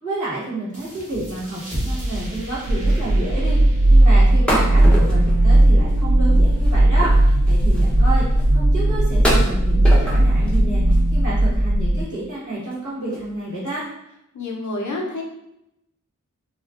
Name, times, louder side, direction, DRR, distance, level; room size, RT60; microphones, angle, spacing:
voice 1, 0.0-8.2 8.5-13.8, right 2 dB, 70° right, -8 dB, 1.1 m, -29 dB
Future Impact, 0.7-6.0, right 1 dB, 25° right, 0.8 m, -34 dB
sound 1, 1.8-2.0 2.3-2.4 2.6-3.0 3.2-3.3 4.5-6.0 6.3-8.5 9.2-10.6 10.9-11.5 12.0-12.1 12.6-12.8 13.1-13.3 13.7-13.8, equal, 5° left, 0.6 m, -28 dB
sound 2, 2.7-12.0, right 1 dB, 55° right, 0.5 m, -16 dB
voice 2, 14.3-15.2, left 2 dB, 65° left, 0 dB, 0.5 m, -28 dB
2.4 x 2.1 x 2.3 m, 0.84 s
wide cardioid pair, 55°, 31 cm